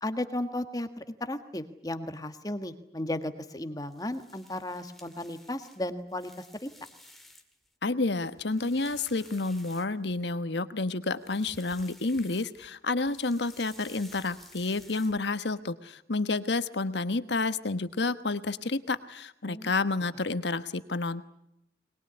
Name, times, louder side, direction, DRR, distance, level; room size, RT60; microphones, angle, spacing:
voice 1, 0.0-6.3 6.6-6.7 19.5-19.7, left 1 dB, 20° left, 9 dB, 1.6 m, -35 dB
sound 1, 3.8-7.7 8.1-10.3 11.1-12.7 13.0-15.5, left 1 dB, ahead, 1.9 m, -54 dB
voice 2, 7.8-21.3, left 3 dB, 80° left, 12 dB, 1.3 m, -30 dB
23.0 x 21.0 x 9.8 m, 0.79 s
head